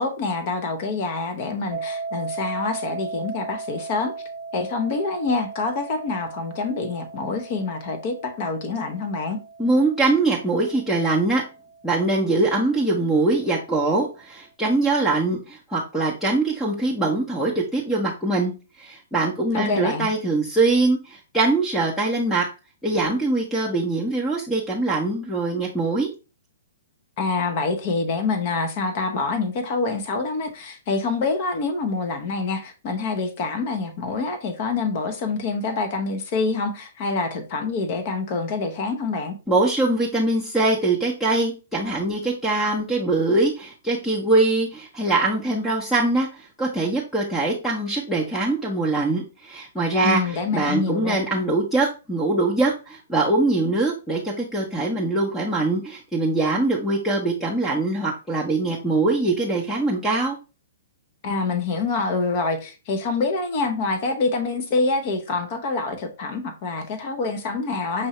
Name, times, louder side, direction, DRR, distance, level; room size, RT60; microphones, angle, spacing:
voice 1, 0.0-4.1 4.5-9.4 19.5-20.1 27.2-39.3 50.0-51.2 61.2-68.1, left 3 dB, 45° left, 0.9 m, -26 dB
sound 1, 1.7-12.6, right 4 dB, 25° right, 0.9 m, -37 dB
voice 2, 9.6-11.4 11.8-18.5 18.8-22.5 22.8-26.1 39.5-60.4, right 2 dB, 10° left, 0.8 m, -22 dB
5.4 x 2.7 x 3.1 m
hypercardioid pair, 125°, 0 cm